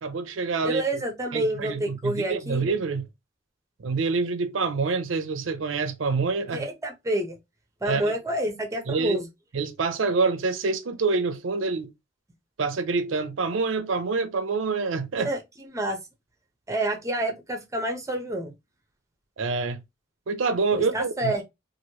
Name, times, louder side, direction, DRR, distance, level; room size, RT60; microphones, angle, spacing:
voice 1, 0.0-0.8 1.3-3.1 3.8-6.6 7.8-8.1 8.9-9.2 9.5-11.9 12.6-15.3 19.4-19.8 20.3-21.3, right 4 dB, 70° right, 0.5 m, -26 dB
voice 2, 0.6-2.6 6.5-7.4 7.8-9.3 15.2-15.4 15.6-16.0 16.7-18.5 20.7-21.4, right 1 dB, 15° right, 0.7 m, -28 dB
3.0 x 2.6 x 2.8 m
head